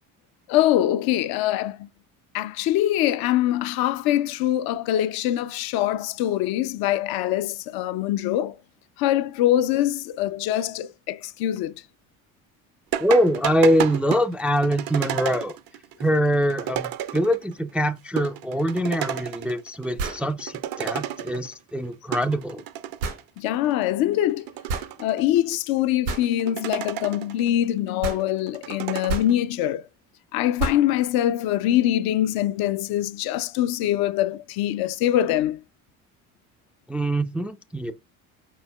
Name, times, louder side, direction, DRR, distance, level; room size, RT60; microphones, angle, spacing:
voice 1, 0.5-1.9 2.3-8.6 9.0-11.7 23.4-24.5 25.0-29.8 30.3-35.6, left 13 dB, 60° left, 0.5 m, -23 dB
sound 1, 12.9-17.5 17.9-18.0 18.2-19.9 20.2-21.5 21.9-23.2 23.7-23.8 24.3-25.5 26.1-27.5 27.9-29.3, right 11 dB, 55° right, 0.6 m, -32 dB
voice 2, 13.0-15.5 16.0-22.6 36.9-37.9, equal, 5° right, 0.3 m, -23 dB
sound 2, 18.7-18.8 20.0-20.3 23.0-23.2 24.7-24.9 26.1-26.3 28.0-28.3 29.1-29.3 30.6-30.9, right 3 dB, 85° right, 2.3 m, -29 dB
4.9 x 4.5 x 2.2 m
hypercardioid pair, 65°, 43 cm